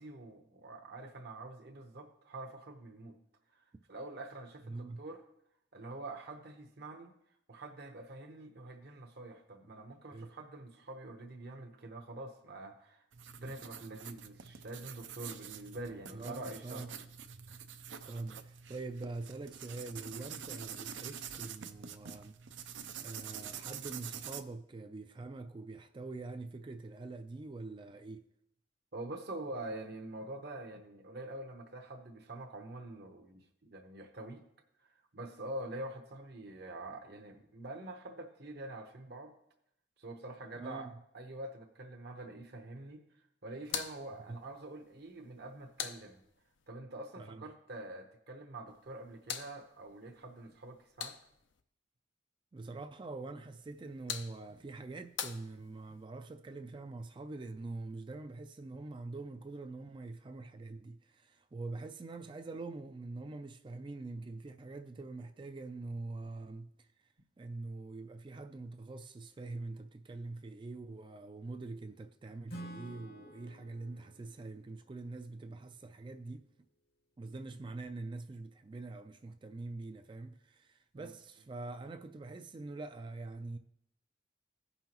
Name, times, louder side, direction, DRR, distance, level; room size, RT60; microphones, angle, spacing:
voice 1, 0.0-3.2 3.5-3.6 3.9-5.2 5.7-7.1 7.5-13.1 13.3-16.8 17.5-17.6 28.9-34.4 34.8-39.3 40.0-40.9 41.1-43.0 43.4-46.2 46.7-51.1 81.0-81.1, right 2 dB, 60° right, 0.9 m, -46 dB
voice 2, 4.7-5.0 10.1-10.3 16.1-16.9 18.1-22.4 23.0-28.3 40.6-40.9 44.3-44.4 47.2-47.5 52.5-66.9 67.4-76.5 77.2-83.6, right 3 dB, 25° right, 0.3 m, -44 dB
sound 1, 13.1-24.4, right 8 dB, 75° right, 0.5 m, -46 dB
sound 2, 43.6-46.7 48.7-51.6 53.6-56.0, left 8 dB, 85° left, 0.6 m, -45 dB
Acoustic guitar / Strum, 72.5-76.1, right 1 dB, 55° left, 0.9 m, -51 dB
16.0 x 5.5 x 3.0 m
head